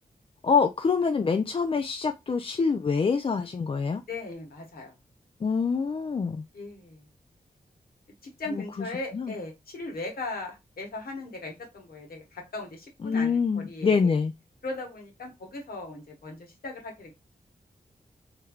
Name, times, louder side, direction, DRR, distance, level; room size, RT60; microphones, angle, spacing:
voice 1, 0.4-4.0 5.4-6.4 9.1-9.3 13.0-14.3, left 5 dB, 35° left, 0.4 m, -25 dB
voice 2, 4.1-4.9 6.5-7.0 8.2-14.1 14.6-17.1, left 2 dB, 75° left, 1.3 m, -38 dB
3.2 x 3.2 x 2.3 m
wide cardioid pair, 75°, 15 cm